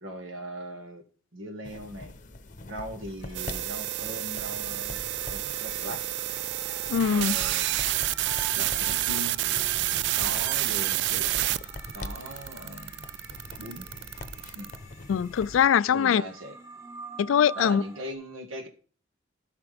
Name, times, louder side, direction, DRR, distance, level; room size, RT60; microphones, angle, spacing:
voice 1, 0.0-1.0 1.3-2.2 2.6-6.0 7.1-7.8 8.6-9.4 10.2-11.3 11.9-13.1 13.6-13.9 14.5-14.7 15.9-16.6 17.5-18.7, equal, 80° right, 1.8 m, -39 dB
sound 1, 1.6-15.7, left 2 dB, 40° left, 0.8 m, -44 dB
sound 2, 3.2-18.1, right 1 dB, 15° right, 1.2 m, -48 dB
sound 3, 3.3-14.8, right 15 dB, 60° right, 0.3 m, -29 dB
voice 2, 6.9-7.4 15.1-16.2 17.2-17.8, left 8 dB, 80° left, 0.3 m, -22 dB
15.0 x 5.8 x 3.5 m
head